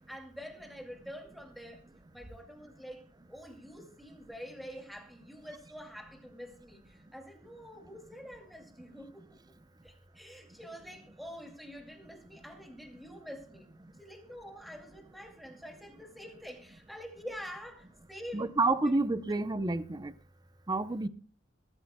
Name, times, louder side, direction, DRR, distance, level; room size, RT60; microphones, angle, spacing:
voice 1, 0.1-1.8 2.1-3.0 3.3-9.4 9.8-13.7 14.0-18.5, equal, ahead, 2.4 m, -47 dB
voice 2, 18.3-20.1 20.7-21.1, right 2 dB, 20° right, 0.6 m, -29 dB
22.0 x 13.5 x 2.2 m
head